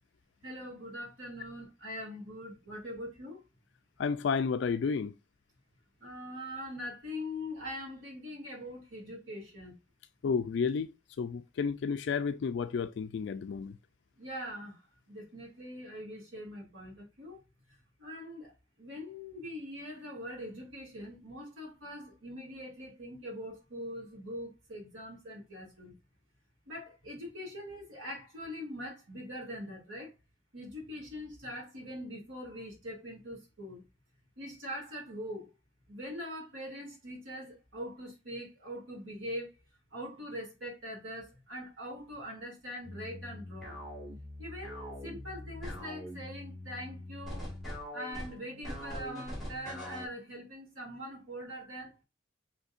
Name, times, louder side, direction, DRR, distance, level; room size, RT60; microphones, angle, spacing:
voice 1, 0.4-3.4 6.0-9.7 14.2-14.8 15.1-17.4 17.7-25.9 26.7-30.1 30.5-33.8 34.4-35.5 35.9-39.6 39.9-43.8 44.4-47.5 47.9-52.0, equal, 90° right, 2.3 m, -42 dB
voice 2, 4.0-5.2 10.2-10.9 11.2-13.8, left 5 dB, 65° left, 0.3 m, -31 dB
sound 1, 42.8-50.1, left 1 dB, ahead, 1.6 m, -43 dB
5.4 x 3.4 x 2.4 m
head